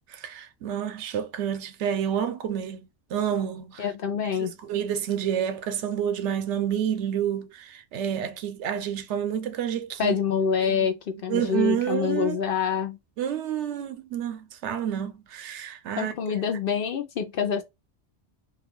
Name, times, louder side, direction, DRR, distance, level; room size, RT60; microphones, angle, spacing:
voice 1, 0.1-3.8 4.4-10.2 10.6-10.9 11.3-12.4 13.2-16.1, right 9 dB, 80° right, 0.9 m, -29 dB
voice 2, 3.8-4.5 10.0-13.0 16.0-17.6, left 7 dB, 60° left, 0.6 m, -26 dB
2.3 x 2.3 x 3.5 m
omnidirectional pair, 1.2 m